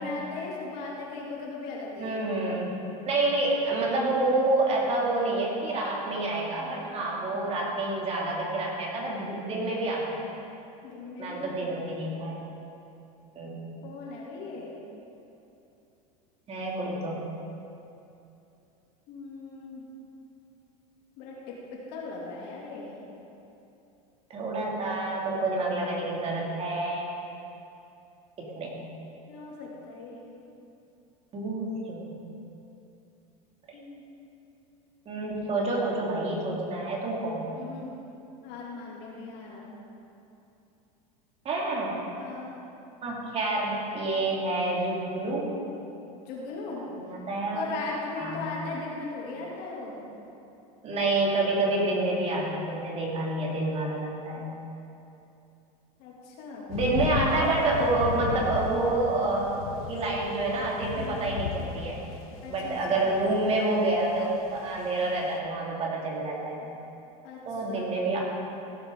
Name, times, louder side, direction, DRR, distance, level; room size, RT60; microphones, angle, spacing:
voice 1, 0.0-2.2 7.3-7.4 10.8-11.6 13.8-14.8 19.1-19.8 21.2-22.9 29.3-30.2 33.7-34.0 37.5-37.9 38.4-39.7 42.2-42.6 46.2-46.8 47.5-50.0 56.0-56.7 60.9-61.3 62.4-63.1 67.2-67.4 67.7-67.8, left 3 dB, 60° left, -4 dB, 3.0 m, -38 dB
voice 2, 2.0-2.7 3.0-10.2 11.2-12.4 13.3-13.7 16.5-17.2 24.3-27.1 28.4-28.8 31.3-32.3 35.1-37.5 41.4-42.0 43.0-45.5 46.7-47.7 48.2-48.5 50.8-54.5 56.7-62.0 62.5-66.6 67.5-68.2, right 2 dB, 35° right, -3 dB, 2.8 m, -28 dB
sound 1, 56.7-65.4, left 7 dB, 80° left, 1.0 m, -35 dB
16.5 x 8.3 x 3.9 m, 2.8 s
supercardioid pair, 110°, 18 cm